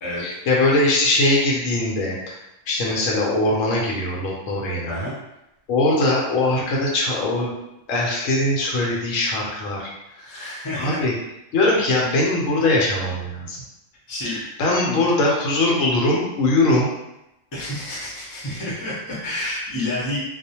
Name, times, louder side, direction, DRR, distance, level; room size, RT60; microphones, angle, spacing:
voice 1, 0.2-2.4 2.7-5.0 5.7-7.6 7.9-9.9 10.8-11.1 11.5-13.6 14.2-16.9, left 2 dB, 80° left, -3 dB, 1.0 m, -21 dB
voice 2, 10.2-11.0 14.1-14.4 14.8-15.0 17.5-20.2, left 1 dB, 20° left, -7 dB, 0.6 m, -29 dB
2.3 x 2.1 x 2.8 m, 0.90 s
omnidirectional pair, 1.3 m